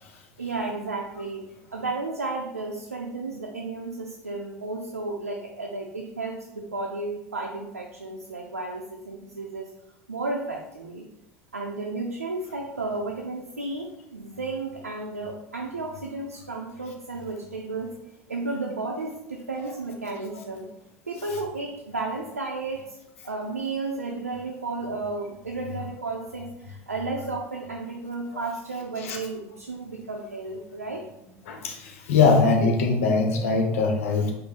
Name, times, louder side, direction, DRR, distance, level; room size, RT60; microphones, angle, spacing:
voice 1, 0.4-1.5 1.7-9.7 10.1-11.1 11.5-17.9 18.3-20.7 21.1-23.0 23.2-31.0, right 3 dB, 90° right, -1 dB, 0.5 m, -33 dB
voice 2, 31.5-34.3, left 4 dB, 70° left, 3 dB, 0.8 m, -22 dB
5.3 x 2.1 x 4.0 m, 0.86 s
figure-of-eight pair, 70°, 8 cm